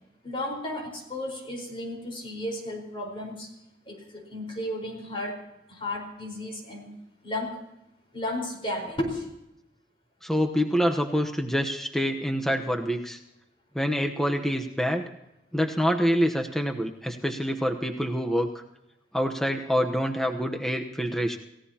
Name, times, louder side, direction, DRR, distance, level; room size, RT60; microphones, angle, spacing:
voice 1, 0.2-3.5 3.8-5.4 5.7-6.9 7.2-7.6 8.1-9.3, left 1 dB, 30° left, 1 dB, 4.6 m, -33 dB
voice 2, 10.2-13.2 13.7-15.0 15.5-18.5 19.1-21.4, equal, ahead, 3 dB, 1.0 m, -26 dB
29.0 x 16.5 x 2.9 m, 0.89 s
head